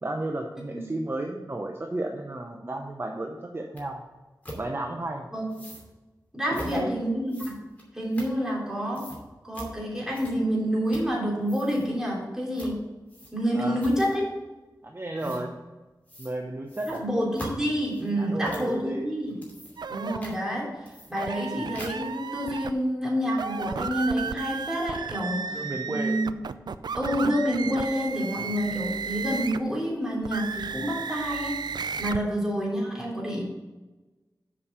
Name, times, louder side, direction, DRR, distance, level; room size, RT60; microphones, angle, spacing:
voice 1, 0.0-4.0 4.6-5.3 6.5-7.0 13.5-13.8 14.8-15.5 16.2-17.0 18.2-19.1 25.5-26.2 32.2-32.3, right 2 dB, 35° right, 2 dB, 0.8 m, -33 dB
sound 1, 3.8-3.9 4.4-4.6 5.5-5.9 6.5-6.8 7.3-8.7 8.9-9.2 9.5-9.7 10.1-10.5 10.9-11.2 11.4-11.9 12.6-12.8 13.1-13.5 13.8-14.2 15.2-15.4 16.1-16.4 16.7-18.7 19.2-19.9 20.2-20.4 20.9-21.5 21.7-22.1, equal, 20° left, 2.6 m, -42 dB
voice 2, 6.3-7.6 7.9-9.1 9.4-12.8 13.3-14.4 15.2-15.4 16.9-19.4 19.9-20.8 21.1-26.3 26.9-31.6 32.0-33.4, equal, 5° right, -3 dB, 3.1 m, -28 dB
sound 2, 19.8-20.2 21.2-22.7 23.3-29.7 30.2-32.2, right 5 dB, 85° right, 0.4 m, -34 dB
7.3 x 5.3 x 6.7 m, 1.2 s
wide cardioid pair, 75°, 7 cm